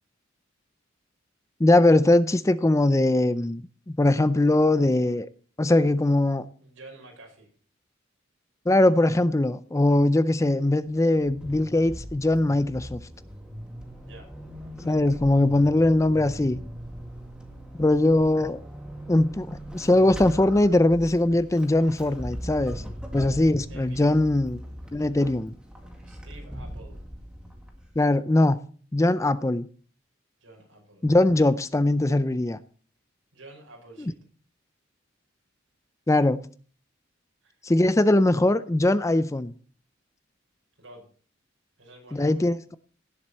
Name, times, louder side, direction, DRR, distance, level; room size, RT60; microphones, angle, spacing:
voice 1, 1.6-5.3 5.6-6.4 8.7-13.0 14.8-16.6 17.8-18.6 19.1-22.8 23.1-24.6 24.9-25.5 28.0-28.6 28.9-29.7 31.0-32.6 36.1-36.4 37.6-39.5 42.1-42.8, left 1 dB, 15° left, 0.4 m, -21 dB
voice 2, 6.6-7.5 14.0-14.3 23.7-24.2 26.1-27.0 30.4-31.0 33.3-34.2 37.4-37.6 40.8-41.1 41.8-42.5, right 2 dB, 75° right, 5.5 m, -49 dB
Vehicle / Accelerating revving vroom / Squeak, 10.9-28.1, equal, 5° right, 1.9 m, -40 dB
17.0 x 7.8 x 4.3 m
head